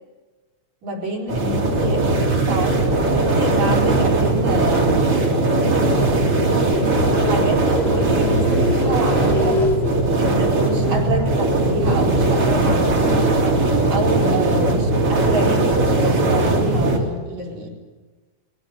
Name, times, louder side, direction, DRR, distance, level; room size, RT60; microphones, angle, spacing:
voice 1, 0.8-5.0 7.1-13.6 13.9-17.7, right 1 dB, 70° right, -2 dB, 5.5 m, -28 dB
sound 1, 1.3-17.0, right 2 dB, 50° right, 4.1 m, -19 dB
sound 2, 6.1-15.7, left 2 dB, 40° left, 4.0 m, -30 dB
21.0 x 17.0 x 9.8 m, 1.3 s
omnidirectional pair, 3.4 m